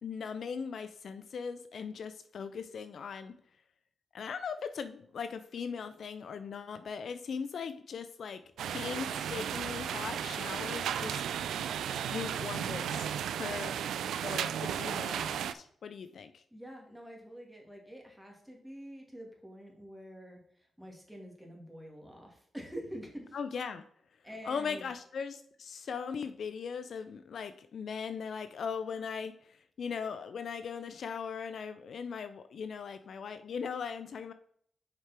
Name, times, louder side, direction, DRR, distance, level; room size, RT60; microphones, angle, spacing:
voice 1, 0.0-3.3 4.1-11.2 12.0-13.1 13.4-13.8 14.2-16.4 23.3-23.8 24.4-34.3, left 6 dB, 70° left, 11 dB, 0.5 m, -39 dB
sound 1, 8.6-15.5, right 9 dB, 85° right, 0.3 m, -34 dB
voice 2, 16.5-20.4 20.8-23.4 24.2-24.9, equal, 5° right, 0 dB, 2.6 m, -46 dB
6.8 x 4.9 x 4.4 m, 0.65 s
cardioid pair, 55°, 0 cm